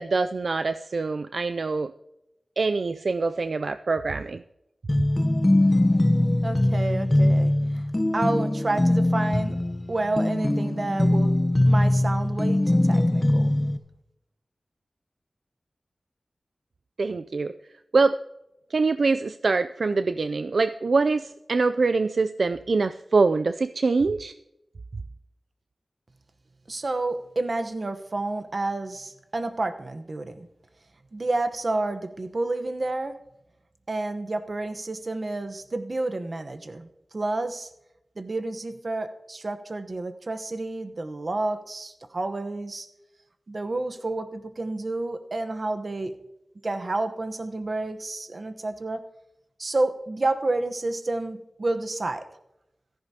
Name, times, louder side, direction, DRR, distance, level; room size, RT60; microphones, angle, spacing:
voice 1, 0.0-1.9 2.6-4.4 17.0-17.5 17.9-18.2 18.7-24.3, right 3 dB, 75° right, 10 dB, 0.3 m, -24 dB
sound 1, 4.9-13.8, left 1 dB, 25° left, 0.8 m, -22 dB
voice 2, 6.4-7.8 8.1-9.6 9.9-11.3 11.6-13.6 26.7-30.5 31.1-33.1 33.9-36.9 37.1-37.7 38.2-42.9 43.5-46.1 46.6-49.0 49.6-52.3, right 2 dB, 55° right, 8 dB, 1.0 m, -30 dB
15.5 x 14.0 x 2.8 m, 0.87 s
wide cardioid pair, 75°, 0 cm